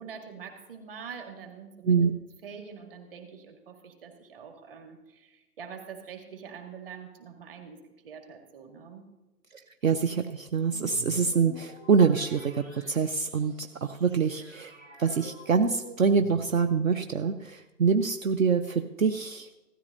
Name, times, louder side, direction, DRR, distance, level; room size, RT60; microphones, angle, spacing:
voice 1, 0.0-2.1 2.4-7.8 8.0-9.1, right 6 dB, 35° right, 4 dB, 1.9 m, -45 dB
voice 2, 9.8-14.7 15.0-19.5, right 5 dB, 55° right, 8 dB, 0.8 m, -25 dB
sound 1, 10.6-16.9, right 2 dB, 10° right, 0.9 m, -47 dB
16.0 x 13.0 x 2.7 m, 1.1 s
hypercardioid pair, 155°, 48 cm